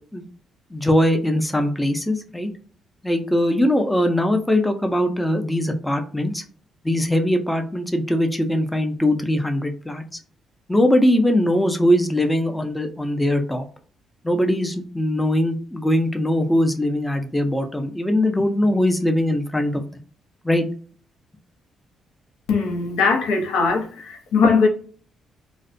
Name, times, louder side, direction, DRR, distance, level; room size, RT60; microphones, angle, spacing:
voice 1, 0.7-2.5 3.0-6.4 6.8-10.0 10.7-13.6 14.2-19.8 20.4-20.7, left 1 dB, 10° left, 0.4 m, -21 dB
voice 2, 22.5-24.7, left 4 dB, 90° left, 0.5 m, -20 dB
2.4 x 2.1 x 2.5 m
cardioid pair, 90°, 0 cm